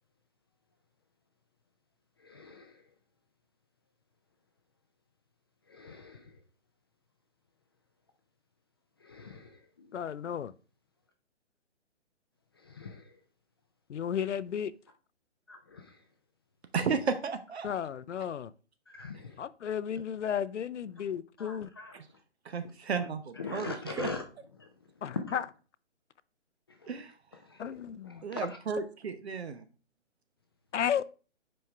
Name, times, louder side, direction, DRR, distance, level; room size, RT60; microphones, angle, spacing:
voice 1, 2.3-2.6 5.8-6.2 9.1-9.4 12.8-12.9 15.5-15.8 19.0-19.2 21.4-21.9 23.4-24.2, left 4 dB, 20° left, 0.4 m, -40 dB
voice 2, 9.9-10.5 13.9-14.7 17.6-18.5 19.4-21.7 25.0-25.5 27.6-28.2 30.7-31.0, left 8 dB, 75° left, 0.6 m, -33 dB
voice 3, 16.7-17.7 21.9-22.1 22.4-24.1 26.9-27.1 28.2-29.6, right 5 dB, 60° right, 0.9 m, -33 dB
7.7 x 5.3 x 3.4 m
figure-of-eight pair, 140°, 36 cm